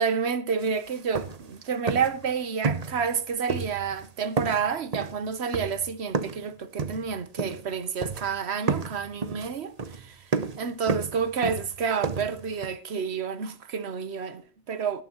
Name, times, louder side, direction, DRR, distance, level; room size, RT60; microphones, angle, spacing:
voice 1, 0.0-10.2 10.6-15.0, right 6 dB, 90° right, 1.3 m, -29 dB
sound 1, 0.6-0.7 1.0-1.6 1.9-2.3 2.6-3.2 3.5-4.1 4.4-6.5 6.8-7.7 8.0-8.4 8.7-12.7, right 4 dB, 40° right, 1.0 m, -31 dB
17.5 x 13.5 x 3.0 m
omnidirectional pair, 1.1 m